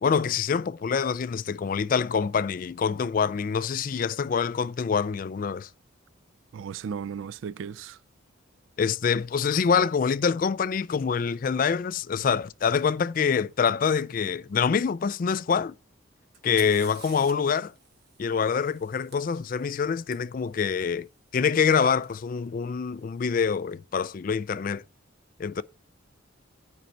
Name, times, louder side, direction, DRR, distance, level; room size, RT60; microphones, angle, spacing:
voice 1, 0.0-5.7 8.8-15.7 16.4-17.7 18.2-21.1 21.3-24.8 25.4-25.6, left 6 dB, 40° left, 0.3 m, -25 dB
voice 2, 6.5-8.0, right 7 dB, 70° right, 0.3 m, -35 dB
Fire, 16.3-20.1 22.0-22.1 23.0-23.4, right 5 dB, 50° right, 1.7 m, -49 dB
9.2 x 5.3 x 4.5 m
head